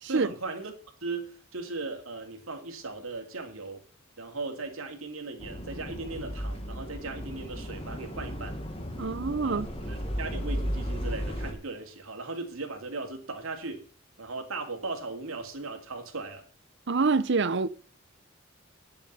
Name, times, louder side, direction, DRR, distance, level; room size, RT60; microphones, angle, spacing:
voice 1, 0.1-0.7 1.0-3.8 4.2-8.6 9.4-9.6 9.9-13.8 14.2-16.4, right 3 dB, 80° right, 2.3 m, -37 dB
sound 1, 5.4-11.5, equal, 25° left, 1.7 m, -35 dB
voice 2, 9.0-9.7 16.9-17.7, right 4 dB, 55° right, 0.7 m, -26 dB
9.5 x 7.2 x 7.9 m
head